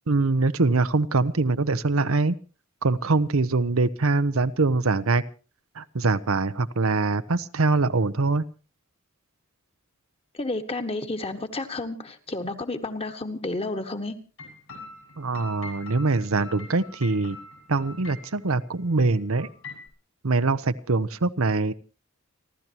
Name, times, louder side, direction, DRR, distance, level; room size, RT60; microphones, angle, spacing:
voice 1, 0.1-2.3 2.8-5.2 5.8-8.4 15.2-17.4 17.7-19.5 20.2-21.7, right 3 dB, 75° right, 13 dB, 0.8 m, -23 dB
voice 2, 10.3-14.1, left 2 dB, 30° left, 8 dB, 1.6 m, -31 dB
sound 1, 14.4-18.6 19.0-19.1 19.4-19.9, left 3 dB, 65° left, 6.2 m, -43 dB
30.0 x 12.5 x 2.9 m, 0.35 s
head